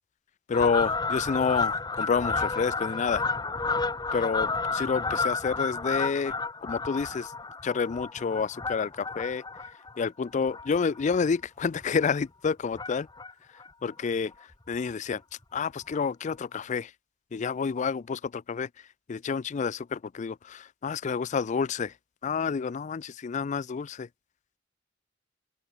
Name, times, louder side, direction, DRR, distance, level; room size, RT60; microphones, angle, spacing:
voice 1, 0.5-3.2 4.1-6.3 6.6-7.3 7.6-9.4 10.0-13.1 13.8-14.3 14.7-15.2 15.5-16.9 17.3-18.7 19.1-21.9 22.2-24.1, left 5 dB, 40° left, 0.4 m, -29 dB
Fowl, 0.5-11.3 11.8-12.0 12.7-13.3 13.6-13.7 13.9-14.0 14.3-14.4 14.7-14.9 15.9-16.0 16.5-16.6, left 4 dB, 20° left, 1.2 m, -31 dB
open air
head